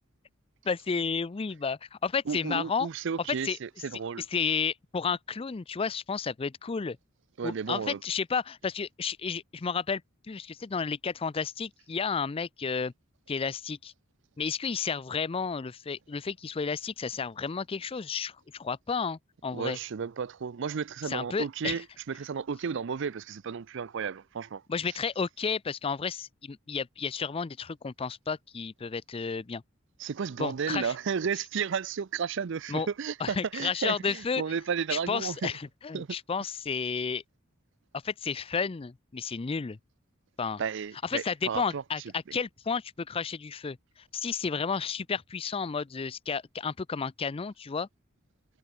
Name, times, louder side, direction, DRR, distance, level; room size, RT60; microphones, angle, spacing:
voice 1, 0.7-2.9 3.4-3.6 4.3-7.0 7.4-10.0 10.3-12.9 13.3-13.9 14.4-19.8 21.1-21.8 24.7-29.6 30.4-30.9 32.7-32.9 33.2-34.4 34.9-37.2 38.0-39.8 40.4-40.6 41.0-43.8 44.1-47.9, left 5 dB, 30° left, 0.4 m, -32 dB
voice 2, 2.3-4.2 7.4-8.0 19.5-24.6 30.0-35.5 35.9-36.1 40.6-41.8, right 6 dB, 65° right, 0.5 m, -33 dB
head